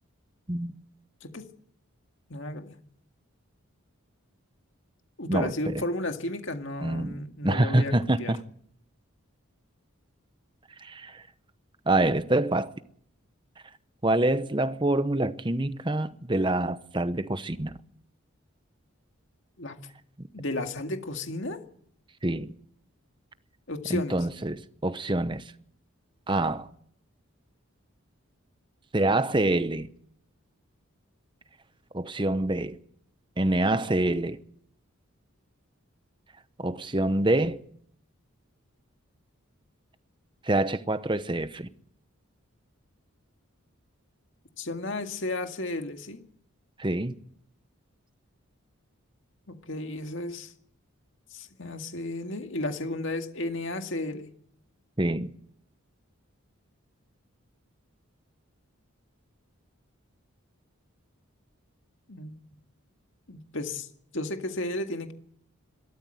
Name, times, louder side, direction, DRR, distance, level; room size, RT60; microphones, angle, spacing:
voice 1, 2.3-2.8 5.2-8.3 19.6-19.8 20.3-21.6 23.7-24.2 44.6-46.2 49.5-50.5 51.3-54.3 62.1-62.3 63.3-63.9 64.1-65.1, left 2 dB, 60° left, 2.1 m, -33 dB
voice 2, 5.3-5.8 6.8-7.2 7.4-8.4 10.8-11.2 11.9-12.7 14.0-17.8 22.2-22.5 23.9-25.5 26.3-26.7 28.9-29.9 31.9-32.8 33.4-34.4 36.6-37.6 40.4-41.7 46.8-47.1 55.0-55.3, right 1 dB, 20° right, 0.9 m, -26 dB
25.5 x 13.5 x 7.8 m
head